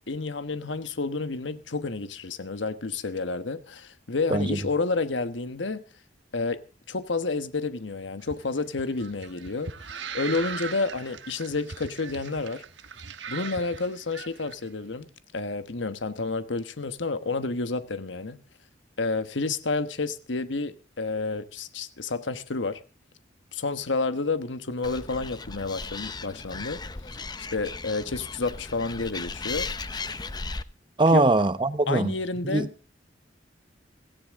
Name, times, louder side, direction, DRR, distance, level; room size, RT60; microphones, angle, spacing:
voice 1, 0.1-5.8 6.3-6.6 6.9-9.7 10.1-12.6 13.3-15.1 15.3-18.4 19.0-22.8 23.5-26.8 27.1-29.7 31.1-31.3 31.9-32.7, left 3 dB, 85° left, 1.2 m, -30 dB
sound 1, 8.2-14.5, right 6 dB, 75° right, 1.2 m, -39 dB
Animal, 24.8-30.6, left 4 dB, 25° left, 0.7 m, -36 dB
voice 2, 31.0-32.1 32.4-32.7, right 2 dB, 25° right, 0.8 m, -22 dB
17.5 x 16.0 x 3.6 m
head